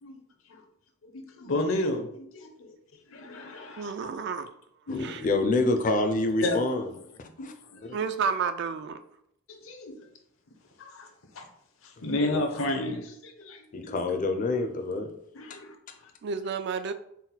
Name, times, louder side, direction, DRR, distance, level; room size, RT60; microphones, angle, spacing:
voice 1, 1.0-2.7 3.1-4.1 4.9-5.1 6.4-6.6 7.4-7.9 9.5-10.1 10.8-11.1 11.3-11.4 11.8-14.0 15.4-15.8, left 2 dB, 70° left, 4 dB, 0.7 m, -32 dB
voice 2, 3.6-4.5 5.0-5.3 7.9-9.0 16.2-16.9, right 6 dB, 55° right, 10 dB, 0.3 m, -31 dB
voice 3, 4.9-6.9 7.2-7.5 7.8-8.0 12.0-12.4 13.7-15.1 15.5-15.6, left 2 dB, 40° left, 6 dB, 0.4 m, -27 dB
4.1 x 2.1 x 4.0 m, 0.74 s
head